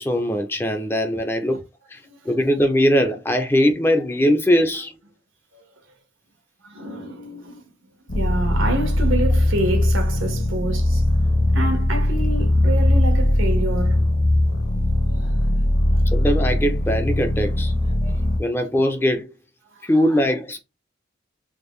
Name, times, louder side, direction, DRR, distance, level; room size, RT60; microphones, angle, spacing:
voice 1, 0.0-1.6 1.9-2.0 2.3-4.9 16.1-17.7 18.0-19.3 19.8-20.6, equal, 10° left, 0.4 m, -21 dB
voice 2, 6.6-7.6 8.1-11.0 11.5-14.0 15.1-15.4 15.9-16.0 17.9-18.0 19.7-19.9, right 1 dB, 90° right, 1.1 m, -28 dB
sound 1, 8.1-18.4, left 1 dB, 50° left, 0.8 m, -20 dB
3.6 x 2.2 x 3.1 m
head